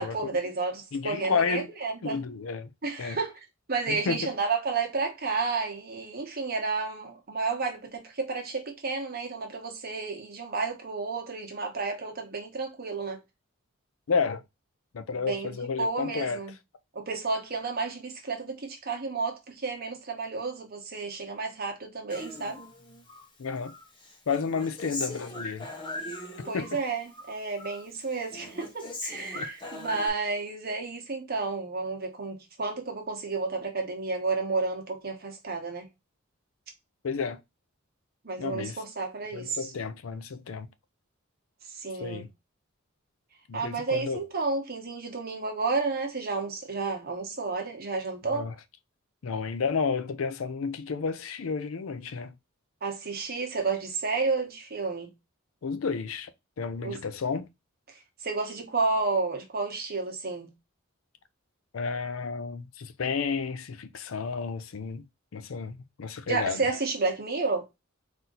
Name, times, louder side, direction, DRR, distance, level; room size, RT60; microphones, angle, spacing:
voice 1, 0.0-2.2 2.8-3.4 3.7-13.2 15.1-16.5 16.9-22.6 26.4-35.9 38.2-39.7 41.7-42.2 43.5-48.5 52.8-55.1 56.8-57.0 57.9-60.5 66.3-67.7, right 4 dB, 45° right, 1.1 m, -31 dB
voice 2, 0.9-1.7 2.0-2.7 3.0-3.2 3.9-4.3 14.1-14.4 14.9-16.4 23.4-23.7 24.3-25.7 26.5-26.8 29.3-29.5 37.0-37.4 38.4-38.8 39.3-40.7 42.0-42.3 43.5-44.2 48.3-48.5 49.2-52.3 55.6-56.3 56.6-57.5 61.7-65.0 65.3-66.7, left 5 dB, 80° left, 0.5 m, -31 dB
Human voice, 22.1-23.3 23.6-26.8 27.1-27.8 28.1-30.1, left 1 dB, 25° left, 0.8 m, -39 dB
4.2 x 2.6 x 3.8 m
head